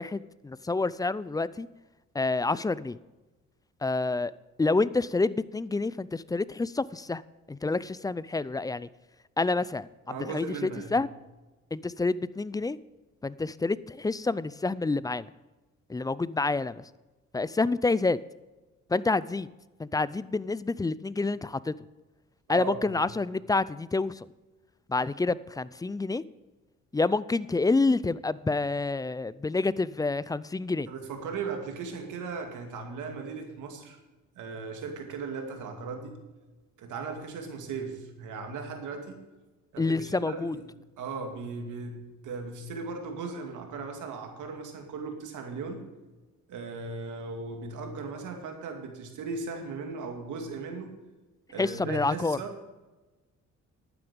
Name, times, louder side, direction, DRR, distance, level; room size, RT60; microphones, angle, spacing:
voice 1, 0.0-1.7 2.1-3.0 3.8-4.3 4.6-7.2 7.5-8.9 9.4-11.1 11.7-12.8 13.2-15.3 15.9-16.9 17.3-18.2 18.9-19.5 19.8-21.7 22.5-24.3 24.9-26.2 26.9-30.9 39.8-40.6 51.6-52.4, left 3 dB, 15° left, 18 dB, 0.4 m, -28 dB
voice 2, 10.1-10.9 22.5-22.9 30.9-34.0 34.3-36.2 36.8-39.2 39.7-40.6 41.0-45.8 46.5-50.9 51.5-52.6, right 4 dB, 80° right, 4 dB, 2.3 m, -37 dB
11.5 x 9.3 x 5.3 m, 1.1 s
cardioid pair, 90°, 30 cm